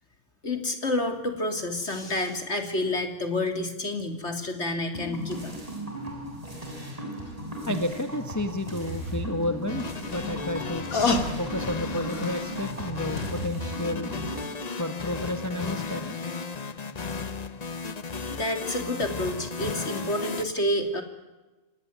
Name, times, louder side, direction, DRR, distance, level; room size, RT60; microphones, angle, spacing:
voice 1, 0.4-5.5 17.7-17.9 18.2-21.0, left 1 dB, 50° left, 6 dB, 3.5 m, -29 dB
sound 1, 4.9-14.5, right 1 dB, 25° right, 7.2 m, -37 dB
sound 2, 7.3-7.4 7.7-7.8 9.7-12.8 13.2-13.3, left 3 dB, 75° left, 2.8 m, -30 dB
voice 2, 7.7-9.8 10.1-10.9 11.4-14.1 14.8-16.2, left 1 dB, 10° left, 7 dB, 1.5 m, -31 dB
sound 3, 9.7-20.4, left 4 dB, 30° left, 1.0 m, -35 dB
26.5 x 19.5 x 9.6 m, 1.1 s
omnidirectional pair, 1.5 m